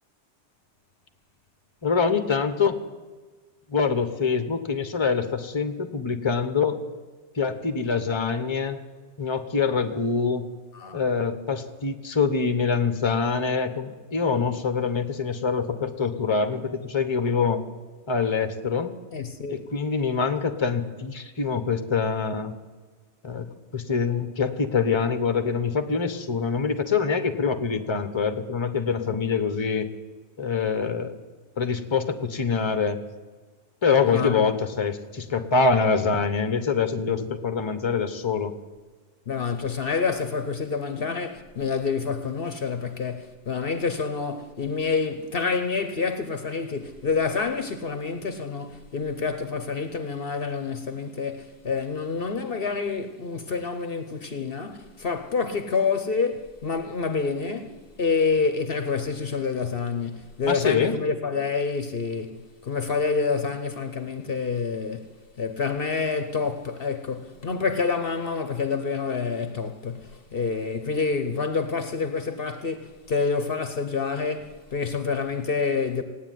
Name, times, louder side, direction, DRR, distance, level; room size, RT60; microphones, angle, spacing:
voice 1, 1.8-2.7 3.7-6.8 7.4-8.8 9.2-10.4 10.9-17.6 18.1-18.9 19.5-22.5 23.2-23.5 23.7-29.9 30.4-31.1 31.6-33.0 33.8-38.5 60.5-61.0, left 5 dB, 25° left, 1.0 m, -25 dB
voice 2, 19.1-19.7 34.1-34.4 39.3-76.0, left 5 dB, 55° left, 1.1 m, -28 dB
17.0 x 9.3 x 9.2 m
omnidirectional pair, 1.2 m